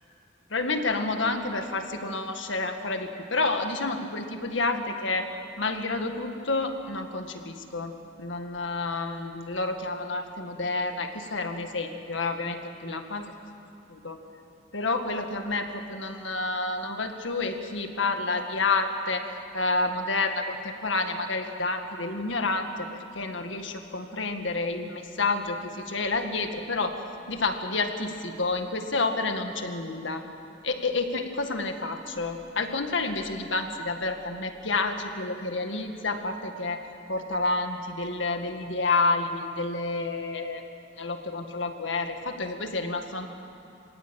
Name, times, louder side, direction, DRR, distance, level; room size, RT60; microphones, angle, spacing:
voice 1, 0.5-5.3 5.6-7.9 8.2-13.2 13.9-14.2 14.7-19.2 19.5-22.9 23.2-27.0 27.3-30.2 30.6-36.8 37.1-40.6 41.0-43.3, left 3 dB, 75° left, 5 dB, 1.9 m, -29 dB
26.0 x 17.0 x 8.9 m, 2.5 s
head